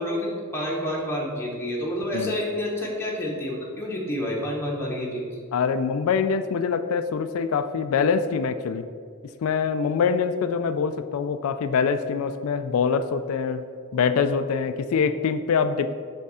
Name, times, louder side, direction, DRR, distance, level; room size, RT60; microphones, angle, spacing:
voice 1, 0.0-5.4, left 1 dB, 10° left, -3 dB, 0.9 m, -29 dB
voice 2, 5.5-8.9 9.4-13.6 13.9-15.9, left 6 dB, 80° left, 10 dB, 0.3 m, -24 dB
6.5 x 3.6 x 5.5 m, 2.1 s
head